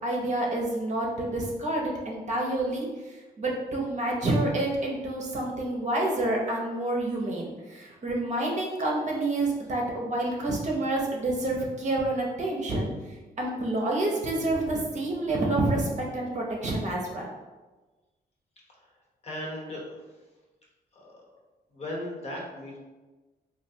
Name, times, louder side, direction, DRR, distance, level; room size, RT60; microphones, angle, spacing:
voice 1, 0.0-2.9 3.4-12.9 13.4-17.3, right 2 dB, 45° right, -2 dB, 0.7 m, -28 dB
voice 2, 18.7-20.2 20.9-21.4 21.7-22.8, left 1 dB, 40° left, -3 dB, 0.8 m, -38 dB
3.2 x 2.3 x 2.7 m, 1.2 s
cardioid pair, 105°, 17 cm